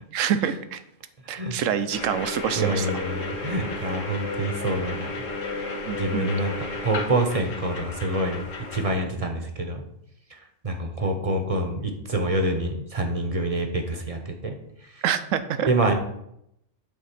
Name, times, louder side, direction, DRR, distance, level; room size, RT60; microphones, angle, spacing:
voice 1, 0.1-0.8 1.3-3.0 5.9-6.3 15.0-15.7, right 8 dB, 85° right, 12 dB, 1.0 m, -26 dB
voice 2, 1.3-1.6 2.6-5.1 6.0-6.5 6.8-9.8 10.6-14.6 15.7-15.9, right 2 dB, 30° right, 4 dB, 0.8 m, -26 dB
sound 1, 1.9-8.9, left 3 dB, 80° left, 1.5 m, -33 dB
8.2 x 3.7 x 5.8 m, 0.78 s
omnidirectional pair, 1.3 m